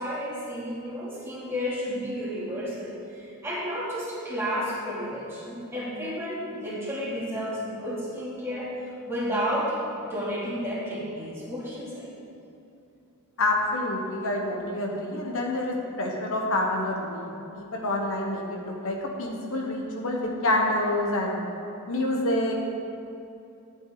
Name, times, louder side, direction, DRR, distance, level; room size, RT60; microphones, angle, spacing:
voice 1, 0.0-8.7 9.0-12.1, equal, 10° right, -8 dB, 2.8 m, -32 dB
voice 2, 13.4-21.4 21.9-22.6, left 1 dB, 65° left, 0 dB, 1.2 m, -27 dB
12.5 x 8.7 x 4.0 m, 2.7 s
head